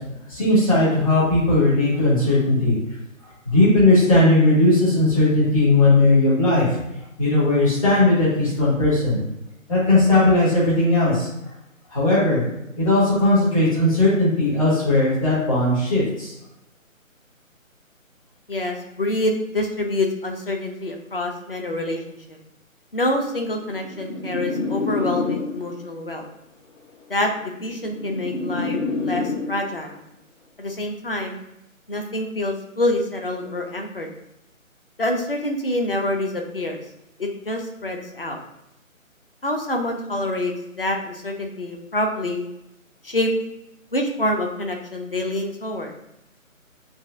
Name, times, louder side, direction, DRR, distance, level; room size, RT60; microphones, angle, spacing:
voice 1, 0.3-2.7 3.4-6.8 7.2-9.2 9.7-11.3 11.9-12.4 12.8-16.3, left 2 dB, 25° left, -8 dB, 1.4 m, -18 dB
voice 2, 18.5-22.2 22.9-26.2 27.1-30.0 30.6-31.4 31.9-34.1 35.0-36.8 37.2-38.4 39.4-42.5 43.0-43.3 43.9-45.9, left 1 dB, 45° left, 3 dB, 0.5 m, -26 dB
sound 1, 23.5-25.9 26.9-29.9, left 3 dB, 60° left, 1.0 m, -28 dB
7.1 x 2.4 x 2.6 m, 0.86 s
hypercardioid pair, 180°, 41 cm